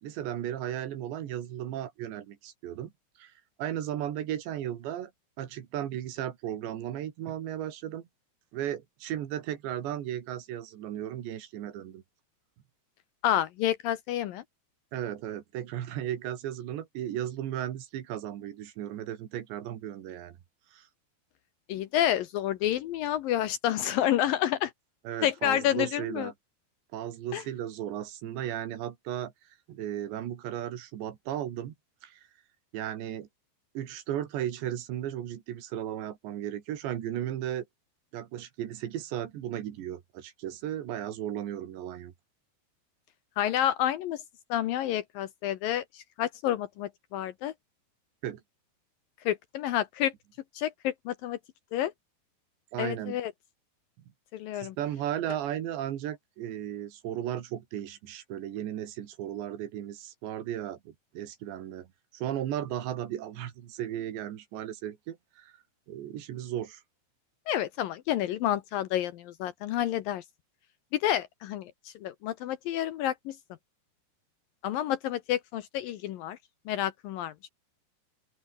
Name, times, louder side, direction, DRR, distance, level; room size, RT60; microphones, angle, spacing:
voice 1, 0.0-2.9 3.2-3.3 3.6-5.1 5.4-8.0 8.5-12.0 14.9-20.4 20.7-20.9 25.1-26.3 26.9-29.3 29.7-31.7 32.0-32.2 32.7-33.3 33.8-37.7 38.1-42.1 48.2-48.4 52.7-53.2 54.6-61.9 62.1-65.5 65.9-66.8, right 11 dB, 90° right, 4.4 m, -35 dB
voice 2, 13.2-14.4 21.7-24.7 25.2-26.3 27.3-27.4 43.4-44.2 44.5-47.5 49.3-50.1 50.5-51.4 51.7-51.9 52.8-53.3 54.3-54.8 67.5-70.2 70.9-73.4 74.6-76.4 76.7-77.3, left 12 dB, 75° left, 2.3 m, -29 dB
open air
omnidirectional pair, 4.9 m